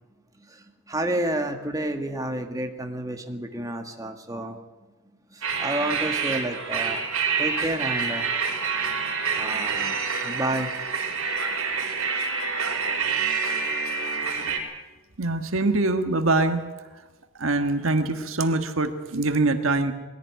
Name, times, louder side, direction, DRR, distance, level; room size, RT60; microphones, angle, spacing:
voice 1, 0.5-4.6 5.3-7.0 7.4-8.3 9.4-10.0 10.2-10.7, right 1 dB, 15° right, 4 dB, 1.8 m, -30 dB
sound 1, 5.4-14.6, right 5 dB, 80° right, 5.3 m, -27 dB
voice 2, 15.2-16.6 17.4-19.9, right 2 dB, 65° right, 7 dB, 1.7 m, -23 dB
21.0 x 16.5 x 9.4 m, 1.2 s
head